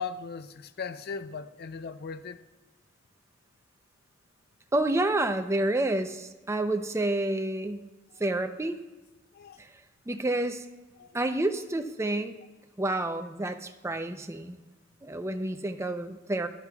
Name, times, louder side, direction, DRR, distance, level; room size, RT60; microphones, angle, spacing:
voice 1, 0.0-2.4 9.3-9.6 11.0-11.2, left 5 dB, 55° left, 0.5 m, -38 dB
voice 2, 4.7-7.8 8.2-8.8 9.6-9.7 10.1-10.6 11.1-12.4 12.8-14.6 15.0-16.5, right 2 dB, 15° right, 0.5 m, -29 dB
14.0 x 11.0 x 2.3 m
head